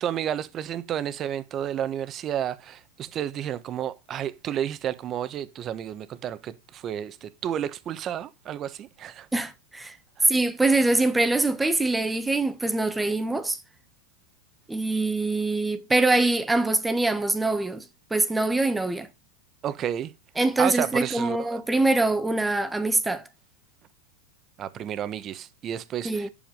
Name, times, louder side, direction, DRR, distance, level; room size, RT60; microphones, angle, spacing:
voice 1, 0.0-9.3 10.2-10.3 19.6-20.1 20.6-21.6 24.6-26.3, right 10 dB, 35° right, 1.2 m, -31 dB
voice 2, 9.3-10.0 10.3-13.6 14.7-17.8 18.1-19.1 20.4-23.2 26.0-26.3, right 2 dB, 10° right, 1.4 m, -24 dB
10.5 x 7.1 x 5.4 m
hypercardioid pair, 115°, 0 cm